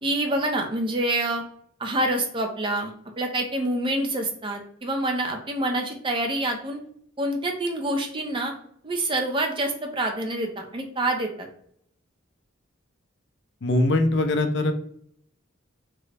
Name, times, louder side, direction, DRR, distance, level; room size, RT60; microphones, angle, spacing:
voice 1, 0.0-1.4 1.8-6.8 7.2-8.5 8.8-11.5, right 1 dB, 25° right, 3 dB, 0.5 m, -27 dB
voice 2, 13.6-14.7, left 2 dB, 60° left, 6 dB, 0.5 m, -21 dB
3.7 x 2.0 x 3.3 m, 0.65 s
head